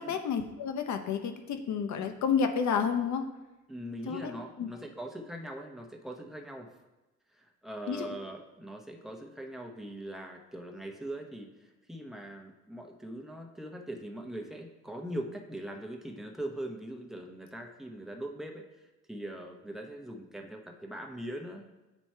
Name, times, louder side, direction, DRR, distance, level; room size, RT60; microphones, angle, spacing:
voice 1, 0.0-3.3 4.1-4.3 4.6-4.7 7.9-8.1, left 6 dB, 70° left, 6 dB, 0.8 m, -30 dB
voice 2, 3.7-6.7 7.3-21.6, right 1 dB, ahead, 2 dB, 0.8 m, -41 dB
9.0 x 3.0 x 4.4 m, 1.0 s
cardioid pair, 90°, 30 cm